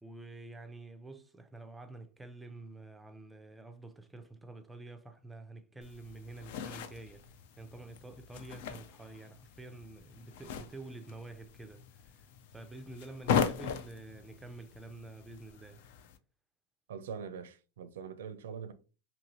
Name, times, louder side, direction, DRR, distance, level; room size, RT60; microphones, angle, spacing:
voice 1, 0.0-7.3 7.6-12.3 12.5-15.8, right 2 dB, 5° right, 0.4 m, -48 dB
sound 1, 5.8-16.2, left 7 dB, 65° left, 0.4 m, -39 dB
voice 2, 16.9-18.7, right 6 dB, 85° right, 0.5 m, -43 dB
2.8 x 2.7 x 2.9 m
supercardioid pair, 135°, 0 cm